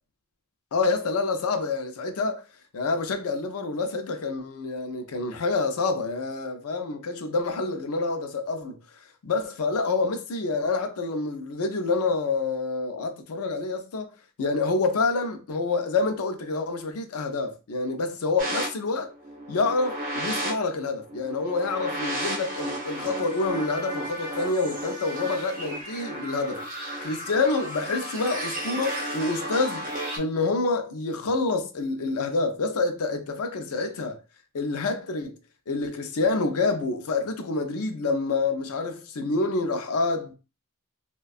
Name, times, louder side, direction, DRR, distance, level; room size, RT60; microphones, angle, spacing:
voice 1, 0.7-2.5 2.7-8.8 9.2-19.1 19.5-26.7 27.0-34.2 34.5-35.4 35.7-40.3, left 3 dB, 80° left, 0.5 m, -27 dB
sound 1, 18.4-30.2, right 1 dB, 40° right, 0.8 m, -33 dB
2.5 x 2.2 x 2.3 m
head